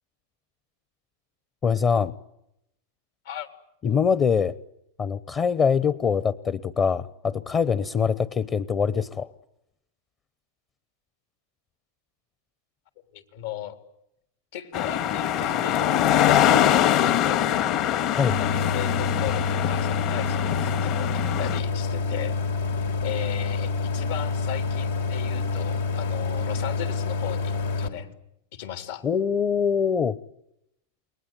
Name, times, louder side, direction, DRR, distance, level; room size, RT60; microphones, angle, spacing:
voice 1, 1.6-2.1 3.8-4.6 5.0-9.3 18.1-18.4 29.0-30.2, left 6 dB, 30° left, 16 dB, 1.0 m, -23 dB
voice 2, 13.1-13.8 14.5-17.4 18.4-22.4 23.0-28.1 28.5-29.0, left 11 dB, 70° left, 7 dB, 3.6 m, -36 dB
sound 1, 14.7-21.6, left 11 dB, 45° left, 2.0 m, -23 dB
Idling, 18.3-27.9, left 4 dB, 85° left, 3.7 m, -27 dB
29.0 x 22.0 x 9.2 m, 0.82 s
hypercardioid pair, 120°, 0 cm